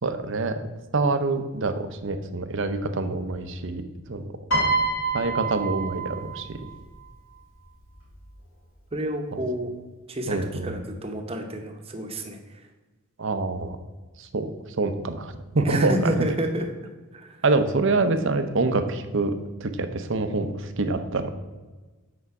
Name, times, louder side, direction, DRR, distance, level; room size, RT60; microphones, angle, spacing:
voice 1, 0.0-0.6 0.9-3.8 4.1-4.3 5.1-6.7 9.3-9.4 10.3-10.8 13.2-13.8 14.2-14.5 14.8-16.1 17.4-19.3 19.6-21.3, right 3 dB, 60° right, 9 dB, 0.7 m, -26 dB
Piano, 4.5-6.9 7.9-8.2, right 3 dB, 70° left, 2.4 m, -27 dB
voice 2, 8.9-9.7 10.1-12.6 15.6-16.7 17.1-17.4, right 1 dB, 25° right, 4 dB, 0.9 m, -29 dB
8.2 x 5.5 x 4.8 m, 1.2 s
head